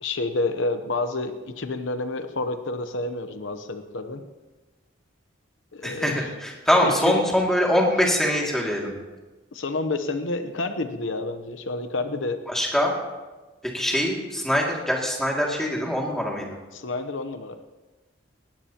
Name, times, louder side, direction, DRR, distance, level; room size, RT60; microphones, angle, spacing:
voice 1, 0.0-4.2 5.7-6.3 6.8-6.9 9.5-12.4 16.7-17.6, left 2 dB, 75° left, 9 dB, 0.9 m, -29 dB
voice 2, 5.8-8.9 12.5-12.9 13.7-16.6, equal, ahead, -2 dB, 2.3 m, -23 dB
19.0 x 18.5 x 2.9 m, 1.2 s
head